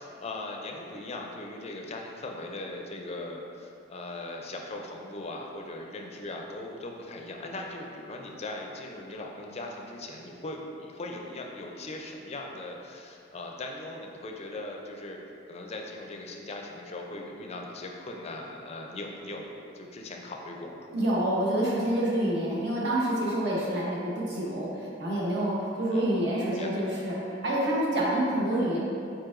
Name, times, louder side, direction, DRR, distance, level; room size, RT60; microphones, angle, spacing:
voice 1, 0.0-15.2 15.5-19.5 19.7-20.9 25.8-27.0, left 2 dB, 35° left, 1 dB, 0.4 m, -39 dB
voice 2, 20.9-27.2 27.4-28.8, right 1 dB, 60° right, -5 dB, 0.9 m, -27 dB
4.6 x 4.5 x 2.5 m, 2.6 s
head